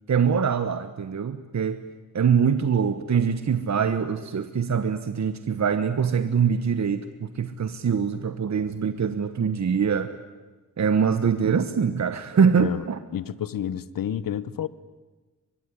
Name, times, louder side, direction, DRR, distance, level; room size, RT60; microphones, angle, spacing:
voice 1, 0.1-1.8 2.1-10.1 10.8-13.0, right 6 dB, 55° right, 1.2 m, -23 dB
voice 2, 13.1-14.7, left 10 dB, 85° left, 0.9 m, -29 dB
23.5 x 23.0 x 9.9 m
wide cardioid pair, 120°, 33 cm